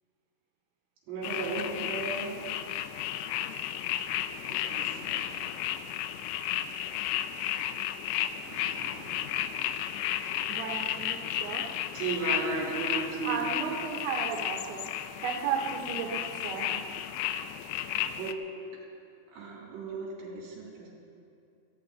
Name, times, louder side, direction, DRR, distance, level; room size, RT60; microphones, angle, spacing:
voice 1, 1.1-2.4 4.5-5.4 8.4-9.3 11.9-13.4 18.2-18.4 19.3-20.9, right 4 dB, 60° right, -4 dB, 5.1 m, -36 dB
sound 1, 1.2-18.3, left 11 dB, 85° left, 2.6 m, -33 dB
voice 2, 10.5-11.7 13.2-14.9 15.2-16.8, right 6 dB, 80° right, -1 dB, 3.3 m, -34 dB
17.5 x 15.5 x 4.0 m, 2.6 s
omnidirectional pair, 5.2 m